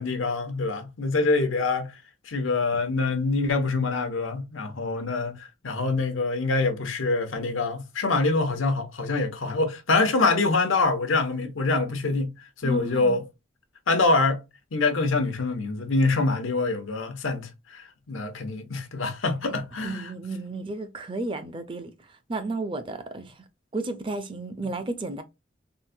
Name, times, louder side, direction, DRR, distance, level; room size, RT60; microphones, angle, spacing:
voice 1, 0.0-1.9 2.3-5.4 5.6-12.3 12.6-13.2 13.9-14.4 14.7-20.1, left 3 dB, 90° left, 0.8 m, -25 dB
voice 2, 12.6-13.2 19.5-23.4 23.7-25.2, right 2 dB, 25° right, 0.4 m, -33 dB
3.7 x 2.1 x 2.6 m
head